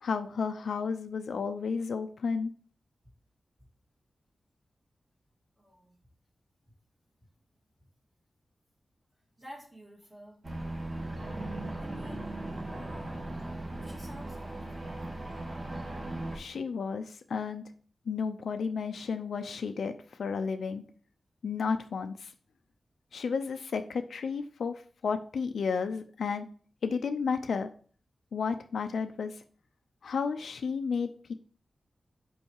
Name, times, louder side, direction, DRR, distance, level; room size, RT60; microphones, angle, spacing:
voice 1, 0.0-2.5 16.3-17.6 18.1-20.8 21.4-22.3 23.1-26.5 26.8-27.7 28.3-29.4 30.0-31.3, left 5 dB, 85° left, 7 dB, 0.5 m, -32 dB
voice 2, 5.6-6.0 9.4-10.5 11.3-12.4 13.2-15.4, equal, 20° right, -3 dB, 2.2 m, -51 dB
sound 1, 10.4-16.4, right 1 dB, 35° right, 1.3 m, -38 dB
5.4 x 4.7 x 4.6 m, 0.43 s
wide cardioid pair, 125°, 0 cm